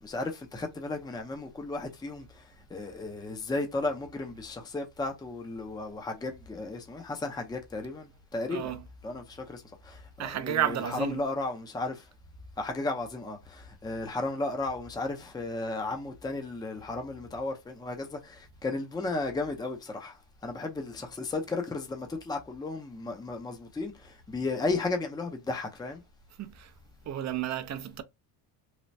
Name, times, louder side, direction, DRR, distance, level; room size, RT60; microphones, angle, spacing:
voice 1, 0.0-8.8 9.0-12.1 12.6-26.0, left 2 dB, 10° left, 0.6 m, -34 dB
voice 2, 8.5-8.9 10.2-11.3 26.4-26.7 27.1-28.0, right 10 dB, 40° right, 0.6 m, -32 dB
3.3 x 2.2 x 2.6 m
cardioid pair, 105°, 43 cm